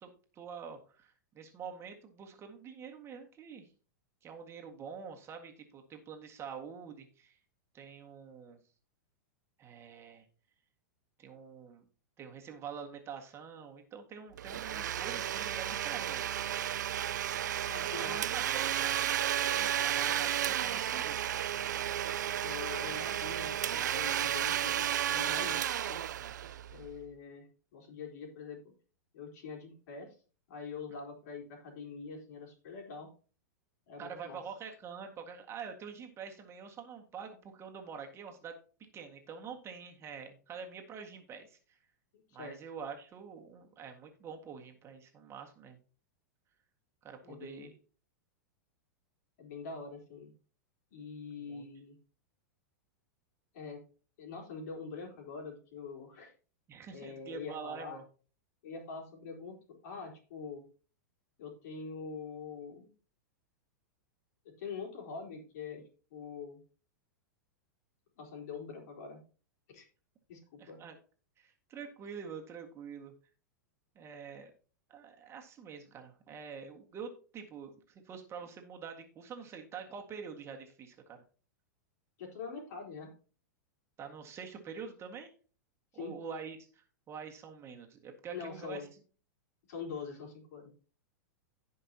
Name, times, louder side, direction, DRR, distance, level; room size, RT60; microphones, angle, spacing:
voice 1, 0.0-3.7 4.2-7.4 7.7-8.6 9.6-10.2 11.2-11.8 12.2-16.4 17.8-21.4 34.0-38.6 38.9-41.8 42.3-45.8 47.0-47.7 51.5-51.7 56.7-58.0 70.6-71.0 71.4-73.1 74.0-74.5 74.9-81.2 84.0-85.3 85.9-88.8, right 6 dB, 25° right, 3 dB, 1.8 m, -46 dB
Domestic sounds home sounds, 14.4-27.0, right 11 dB, 80° right, 0.5 m, -33 dB
voice 2, 17.7-18.2 22.4-26.0 26.7-28.7 29.1-30.2 30.5-33.1 33.9-34.4 42.1-42.6 47.2-47.7 49.4-50.3 50.9-52.0 53.5-53.8 54.2-56.3 56.9-58.0 58.6-60.6 61.4-62.9 64.4-65.8 66.1-66.6 68.2-69.2 69.7-69.9 70.3-70.8 82.2-83.1 85.9-86.2 88.3-88.9 89.7-90.7, left 5 dB, 65° left, 1 dB, 3.8 m, -44 dB
16.5 x 5.5 x 2.9 m, 0.38 s
hypercardioid pair, 115°, 10 cm